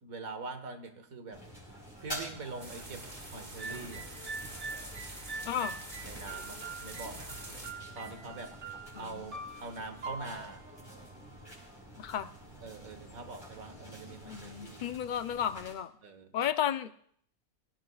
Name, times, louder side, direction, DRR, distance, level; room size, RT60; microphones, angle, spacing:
voice 1, 0.0-1.4 2.0-4.1 6.0-8.5 9.0-10.7 12.6-14.8 16.0-16.5, right 3 dB, 85° right, 8 dB, 1.9 m, -44 dB
sound 1, 1.3-15.7, right 1 dB, 15° left, 5.5 m, -48 dB
sound 2, 2.6-7.7, right 1 dB, 30° right, 2.1 m, -46 dB
sound 3, 3.6-11.6, right 3 dB, 55° right, 1.6 m, -44 dB
voice 2, 5.5-5.8 8.9-9.3 12.0-12.3 14.1-15.9 16.3-16.9, left 9 dB, 50° left, 11 dB, 0.6 m, -33 dB
25.0 x 17.0 x 2.4 m, 0.64 s
omnidirectional pair, 1.4 m